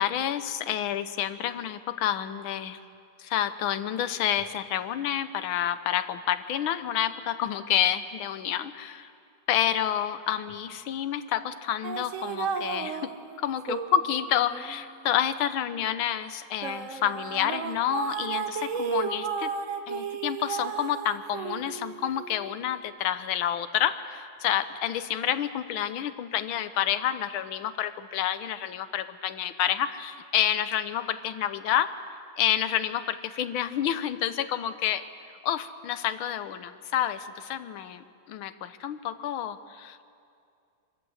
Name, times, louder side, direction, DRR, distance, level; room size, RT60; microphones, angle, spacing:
voice 1, 0.0-2.8 3.2-9.1 9.5-13.1 13.4-19.5 19.9-31.9 32.4-35.0 35.4-40.0, left 10 dB, 85° left, 12 dB, 1.6 m, -29 dB
sound 1, 11.8-15.8 16.3-22.8, right 6 dB, 50° right, 1.0 m, -34 dB
26.0 x 13.5 x 7.9 m, 2.4 s
omnidirectional pair, 2.2 m